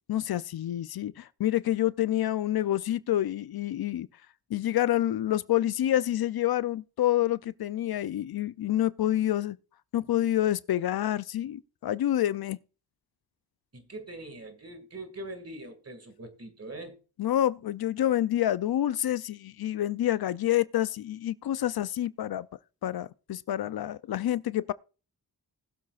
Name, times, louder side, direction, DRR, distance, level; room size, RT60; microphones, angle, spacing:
voice 1, 0.1-4.1 4.5-9.6 9.9-12.6 17.2-22.5 22.8-24.7, left 12 dB, 70° left, 0.5 m, -28 dB
voice 2, 13.7-17.0, right 2 dB, 40° right, 2.0 m, -42 dB
20.0 x 7.4 x 2.4 m
cardioid pair, 65°, 38 cm